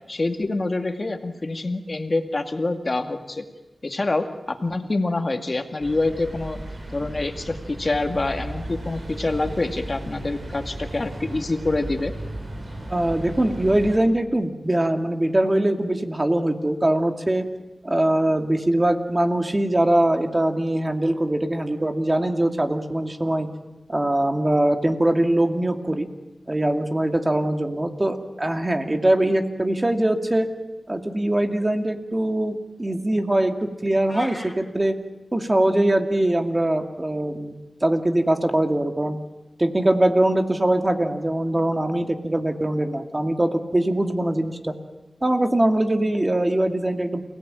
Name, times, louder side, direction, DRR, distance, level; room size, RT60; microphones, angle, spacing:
voice 1, 0.1-3.4 3.8-6.6 6.9-12.1, left 2 dB, 50° left, 6 dB, 2.1 m, -26 dB
sound 1, 5.8-14.0, right 1 dB, 70° right, 6.2 m, -35 dB
voice 2, 12.9-17.4 17.8-23.5 23.9-26.1 26.5-30.5 30.9-34.9 35.3-37.5 37.8-39.2 39.6-44.7 45.2-47.2, right 1 dB, 30° right, 5 dB, 2.4 m, -22 dB
sound 2, 34.0-34.5, left 1 dB, 25° left, 4.2 m, -37 dB
29.0 x 17.5 x 8.9 m, 1.0 s
cardioid pair, 45°, 0 cm